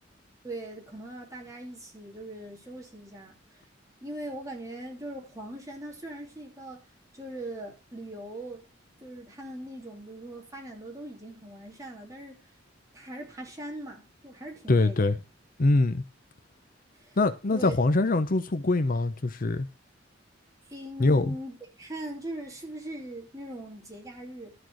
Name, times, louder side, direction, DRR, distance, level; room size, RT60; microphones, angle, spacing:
voice 1, 0.4-3.4 4.0-6.9 7.1-8.6 9.0-12.4 12.9-15.0 16.9-17.2 17.5-17.7 20.7-24.5, right 1 dB, 20° right, 2.8 m, -40 dB
voice 2, 14.7-15.2 15.6-16.0 17.2-19.7 21.0-21.4, left 2 dB, 45° left, 0.7 m, -23 dB
13.0 x 4.5 x 6.2 m
head